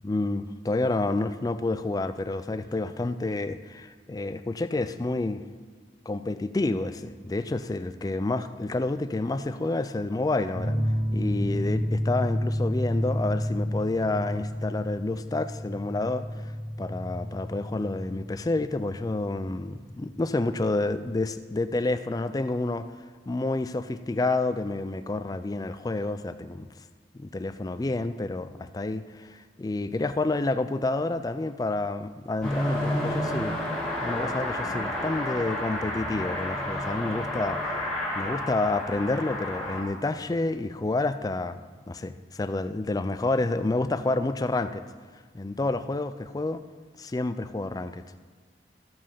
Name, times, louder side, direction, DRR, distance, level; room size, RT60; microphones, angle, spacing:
voice 1, 0.0-5.4 6.1-10.8 11.1-16.5 16.8-22.9 23.3-26.7 27.1-33.6 34.0-37.7 38.1-41.6 41.9-44.8 45.3-46.6 47.1-48.2, left 2 dB, 20° left, 11 dB, 0.3 m, -29 dB
sound 1, 10.5-21.7, equal, 75° right, 2.6 m, -31 dB
Car passing by / Accelerating revving vroom, 32.4-39.8, left 1 dB, 5° left, 2.0 m, -30 dB
14.0 x 5.2 x 5.6 m, 1.5 s
head